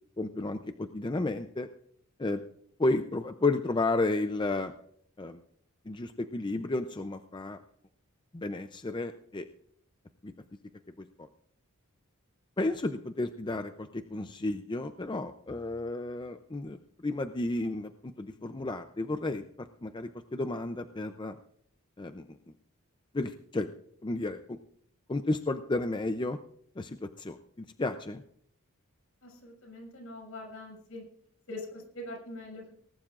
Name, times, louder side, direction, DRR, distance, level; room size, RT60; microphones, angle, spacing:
voice 1, 0.2-1.7 2.2-2.4 2.8-4.7 5.2-5.4 5.9-7.6 8.3-9.5 10.2-10.3 11.2-11.3 12.6-19.4 19.8-21.4 22.0-22.2 23.1-23.7 24.0-24.6 25.1-26.4 26.8-28.2, left 2 dB, 20° left, 8 dB, 0.5 m, -32 dB
voice 2, 29.2-31.0 31.5-32.8, left 1 dB, 65° left, 1 dB, 6.5 m, -43 dB
19.0 x 19.0 x 2.5 m, 0.66 s
head